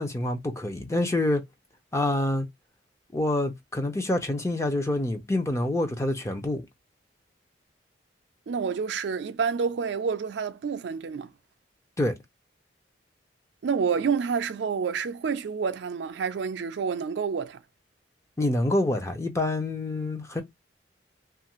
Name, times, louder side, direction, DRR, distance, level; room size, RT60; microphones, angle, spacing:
voice 1, 0.0-1.4 1.9-2.5 3.1-6.6 12.0-12.2 18.4-20.4, left 1 dB, 15° left, 0.5 m, -26 dB
voice 2, 8.5-11.3 13.6-17.6, right 6 dB, 65° right, 0.4 m, -28 dB
2.6 x 2.4 x 2.9 m
head